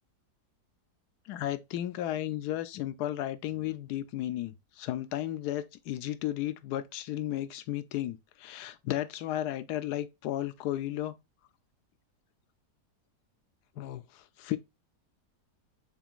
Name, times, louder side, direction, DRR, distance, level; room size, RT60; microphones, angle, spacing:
voice 1, 1.3-11.2 13.8-14.6, left 13 dB, 75° left, 1.1 m, -34 dB
6.8 x 2.6 x 2.4 m
omnidirectional pair, 1.8 m